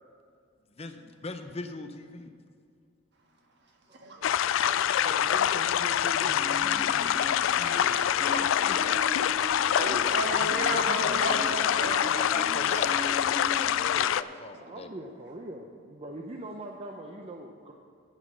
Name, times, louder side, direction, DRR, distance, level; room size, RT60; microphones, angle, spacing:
voice 1, 0.8-2.3 8.2-9.0 11.9-14.9, left 3 dB, 30° left, 7 dB, 0.6 m, -39 dB
voice 2, 4.0-5.0 5.7-5.8 7.9-8.1 9.7-11.9 14.0-14.1, right 2 dB, 60° right, 2 dB, 1.6 m, -34 dB
sound 1, 4.2-14.2, left 10 dB, 75° left, 0.3 m, -26 dB
voice 3, 5.0-8.3 9.3-9.6 14.6-17.7, right 1 dB, 30° right, 1 dB, 0.7 m, -43 dB
sound 2, 6.1-14.1, equal, 10° right, 1.9 m, -40 dB
9.9 x 9.1 x 6.3 m, 2.3 s
head